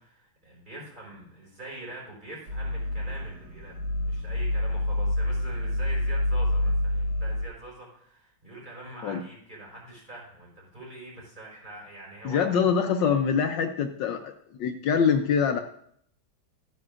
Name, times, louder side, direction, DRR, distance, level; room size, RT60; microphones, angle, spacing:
voice 1, 0.0-3.7 4.0-12.5, right 1 dB, 20° right, -4 dB, 4.6 m, -44 dB
sound 1, 2.5-7.4, left 1 dB, 55° right, 2.1 m, -27 dB
voice 2, 12.2-14.3 14.6-15.6, left 6 dB, 70° left, 6 dB, 1.3 m, -24 dB
13.5 x 9.6 x 2.4 m, 0.66 s
omnidirectional pair, 2.2 m